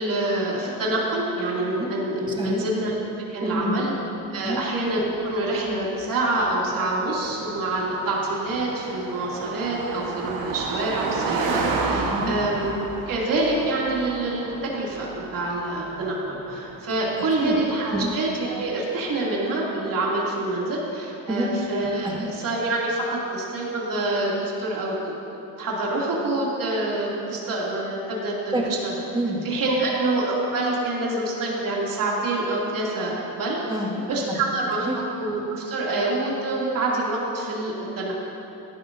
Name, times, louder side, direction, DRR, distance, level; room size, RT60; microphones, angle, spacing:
voice 1, 0.0-2.9 3.3-3.9 4.3-12.7 13.1-28.9 29.4-33.6 34.1-38.1, right 2 dB, 60° right, -5 dB, 2.9 m, -26 dB
voice 2, 2.3-2.7 3.4-4.0 4.4-4.7 12.1-12.4 17.1-17.6 17.9-18.1 21.3-21.6 22.0-22.3 28.5-28.7 29.1-29.4 33.7-34.4 34.8-35.0, right 1 dB, 10° right, -3 dB, 2.1 m, -28 dB
Car passing by, 4.9-18.7, right 4 dB, 75° right, 1.4 m, -32 dB
15.0 x 11.5 x 2.7 m, 2.9 s
cardioid pair, 90°, 37 cm